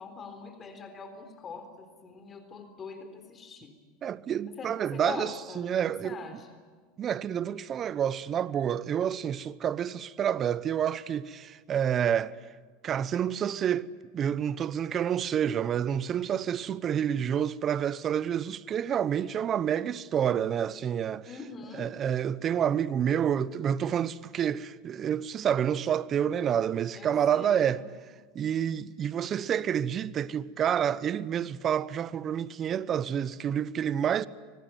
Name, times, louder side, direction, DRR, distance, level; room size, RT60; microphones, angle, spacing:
voice 1, 0.0-3.7 4.5-5.7 6.0-6.6 21.2-21.9 27.0-27.9, left 5 dB, 30° left, 3.8 m, -43 dB
voice 2, 4.0-6.2 7.0-12.4 12.8-21.3 21.7-27.8 28.3-34.3, right 9 dB, 35° right, 0.9 m, -28 dB
24.5 x 19.0 x 9.5 m
hypercardioid pair, 100°, 0 cm